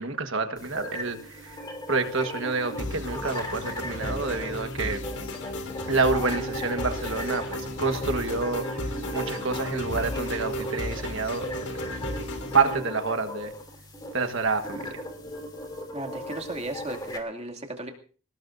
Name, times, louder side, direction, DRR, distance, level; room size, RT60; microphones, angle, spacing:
voice 1, 0.0-5.0 5.9-8.9 9.1-11.5 12.5-13.5 14.1-15.0, right 4 dB, 55° right, 6 dB, 1.5 m, -28 dB
sound 1, 0.6-17.2, left 1 dB, 20° left, 3.0 m, -38 dB
sound 2, 2.8-12.8, left 1 dB, 90° left, 4.2 m, -34 dB
voice 2, 15.9-17.9, right 2 dB, 30° right, 2 dB, 2.5 m, -35 dB
27.0 x 18.0 x 2.7 m, 0.41 s
head